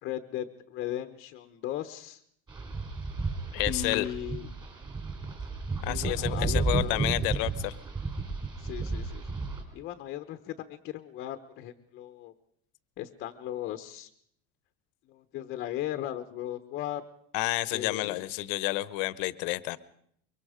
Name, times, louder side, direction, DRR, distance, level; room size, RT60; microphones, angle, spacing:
voice 1, 0.0-2.2 3.7-4.5 5.9-7.0 8.6-9.3 9.7-12.3 13.0-14.1 15.1-17.0 17.7-18.2, left 12 dB, 35° left, 8 dB, 0.9 m, -37 dB
sound 1, 2.5-9.6, right 4 dB, 15° right, 3.0 m, -32 dB
voice 2, 3.5-4.1 5.8-7.7 17.3-19.8, left 19 dB, 65° left, 17 dB, 1.0 m, -30 dB
24.0 x 23.5 x 5.0 m, 0.67 s
cardioid pair, 175°, 29 cm